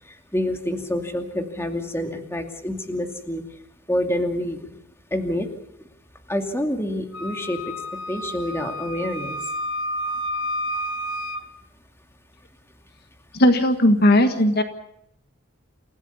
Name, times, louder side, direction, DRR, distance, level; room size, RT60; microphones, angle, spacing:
voice 1, 0.3-3.4 3.9-4.8 5.1-5.5 6.3-7.7 8.1-9.4, left 1 dB, 15° left, 5 dB, 2.5 m, -27 dB
Wind instrument woodwind instrument, 7.1-11.5, equal, 70° left, 1.7 m, -30 dB
voice 2, 13.4-14.6, left 1 dB, 55° left, 8 dB, 1.6 m, -17 dB
28.5 x 16.5 x 7.1 m, 0.77 s
head